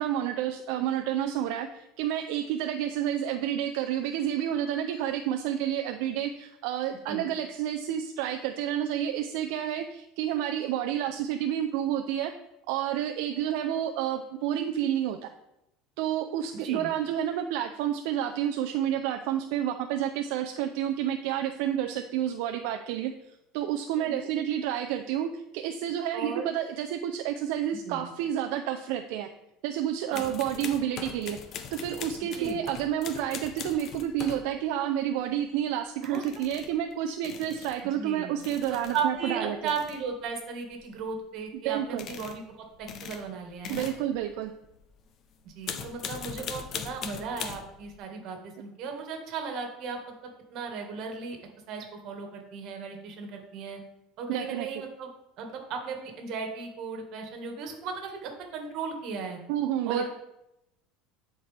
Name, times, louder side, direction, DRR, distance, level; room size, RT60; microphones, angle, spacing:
voice 1, 0.0-12.3 12.7-15.3 16.0-23.1 23.5-29.3 29.6-31.4 31.7-39.7 41.5-42.1 43.7-44.5 54.3-54.7 59.5-60.1, right 10 dB, 70° right, 5 dB, 0.4 m, -30 dB
voice 2, 16.5-16.9 23.9-24.3 26.1-26.5 27.9-28.0 30.1-30.4 32.3-32.6 36.0-36.3 37.8-38.3 38.7-43.9 45.4-50.1 50.5-51.4 51.7-53.8 54.2-55.1 55.4-59.4 59.9-60.1, right 5 dB, 50° right, 3 dB, 1.5 m, -36 dB
sound 1, 30.1-34.5 36.0-36.8 37.2-37.8 38.4-39.1 39.5-40.1 40.7-41.1 41.8-42.4 42.7-45.0 45.4-48.0, left 7 dB, 40° left, 0.6 m, -40 dB
11.0 x 4.4 x 3.3 m, 0.88 s
cardioid pair, 145°, 0 cm